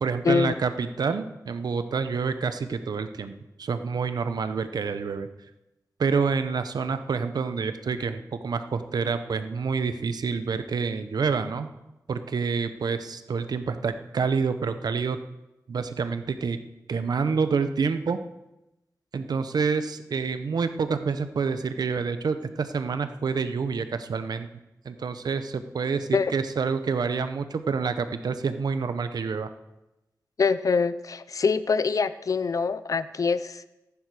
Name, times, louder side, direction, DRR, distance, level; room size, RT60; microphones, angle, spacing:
voice 1, 0.0-3.3 3.6-5.3 6.0-11.7 12.1-15.2 15.7-16.6 16.9-18.2 19.1-24.5 24.8-29.5, right 5 dB, 90° right, 10 dB, 0.8 m, -27 dB
voice 2, 30.4-33.6, left 5 dB, 60° left, 14 dB, 0.6 m, -24 dB
14.5 x 10.5 x 4.9 m, 0.94 s
wide cardioid pair, 120°, 7 cm